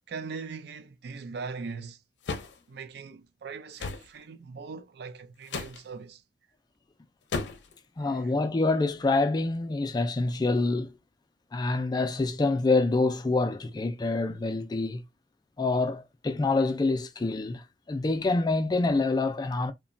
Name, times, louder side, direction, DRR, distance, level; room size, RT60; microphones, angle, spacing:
voice 1, 0.1-2.0 2.7-6.2 8.0-8.3, right 5 dB, 65° right, 0.4 m, -40 dB
sound 1, 2.2-2.6 3.8-4.1 5.5-5.8 7.3-7.7, left 4 dB, 85° left, 0.5 m, -33 dB
voice 2, 8.0-10.9 11.5-15.0 15.6-19.7, left 3 dB, 25° left, 0.3 m, -26 dB
2.9 x 2.1 x 2.5 m
head